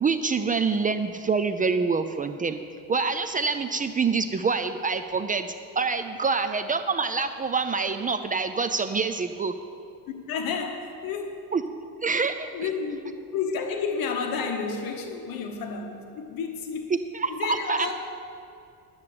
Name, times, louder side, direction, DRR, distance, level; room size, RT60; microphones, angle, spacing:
voice 1, 0.0-2.6 2.9-9.5 11.5-11.6 12.0-12.5 17.1-17.9, right 4 dB, 25° right, 8 dB, 0.4 m, -26 dB
voice 2, 10.1-11.4 12.5-16.9 17.3-17.9, left 5 dB, 75° left, 4 dB, 1.2 m, -31 dB
11.0 x 8.7 x 6.6 m, 2.5 s
cardioid pair, 135°, 35 cm